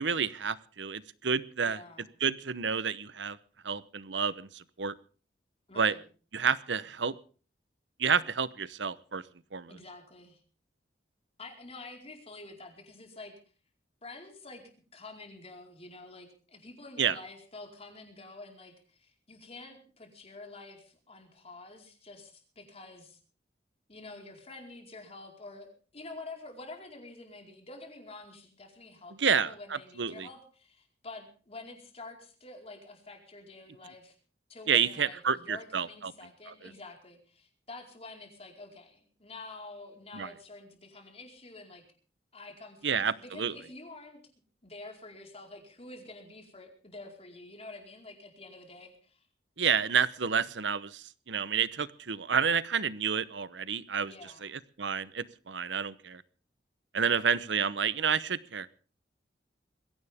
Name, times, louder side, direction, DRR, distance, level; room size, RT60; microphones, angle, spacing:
voice 1, 0.0-1.8 2.2-3.4 3.6-4.9 5.8-5.9 6.3-7.1 8.0-9.2 9.5-9.8 17.0-17.2 29.2-30.3 34.7-36.1 36.5-36.7 40.1-40.3 42.8-43.5 49.6-56.2 56.9-58.7, right 6 dB, 80° right, 17 dB, 0.9 m, -30 dB
voice 2, 1.6-2.1 5.7-6.0 9.7-10.4 11.4-13.4 14.0-23.2 23.9-34.1 34.5-41.8 42.3-44.2 44.6-49.3 54.0-54.5 57.0-57.3, left 2 dB, 35° left, 3 dB, 4.6 m, -48 dB
21.5 x 16.5 x 3.6 m, 0.40 s
head